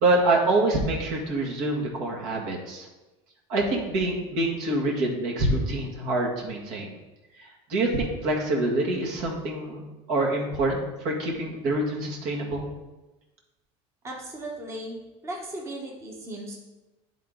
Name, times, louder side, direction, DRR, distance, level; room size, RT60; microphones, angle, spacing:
voice 1, 0.0-2.9 3.5-6.9 7.4-9.8 10.1-12.6, right 2 dB, 65° right, -1 dB, 1.8 m, -26 dB
voice 2, 14.0-15.0 15.2-16.5, right 1 dB, 15° right, -2 dB, 1.0 m, -36 dB
10.0 x 3.9 x 3.8 m, 1.1 s
cardioid pair, 145°, 16 cm